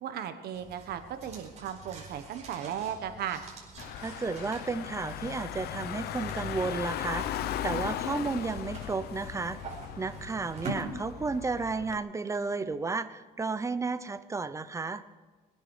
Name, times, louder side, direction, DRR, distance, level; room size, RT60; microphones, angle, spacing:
voice 1, 0.0-3.4, right 9 dB, 70° right, 9 dB, 1.4 m, -36 dB
sound 1, 0.5-10.7, right 3 dB, 40° right, 4.7 m, -46 dB
Car / Engine, 3.8-12.0, left 11 dB, 70° left, 0.7 m, -37 dB
voice 2, 4.0-7.3 7.6-9.6 10.0-15.0, right 4 dB, 15° right, 12 dB, 0.8 m, -33 dB
22.5 x 10.0 x 4.9 m, 1.3 s
cardioid pair, 115°, 17 cm